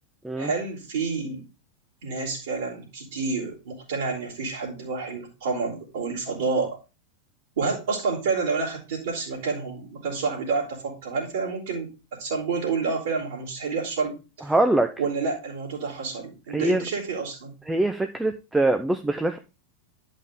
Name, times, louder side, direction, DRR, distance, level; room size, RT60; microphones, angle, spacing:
voice 1, 0.4-1.4 2.0-6.8 7.6-14.5 15.0-17.6, right 4 dB, 60° right, -9 dB, 3.4 m, -29 dB
voice 2, 14.5-14.9 16.5-16.8 17.7-19.4, right 2 dB, 5° right, 7 dB, 0.6 m, -23 dB
11.0 x 5.4 x 3.7 m, 0.30 s
figure-of-eight pair, 90°, 0 cm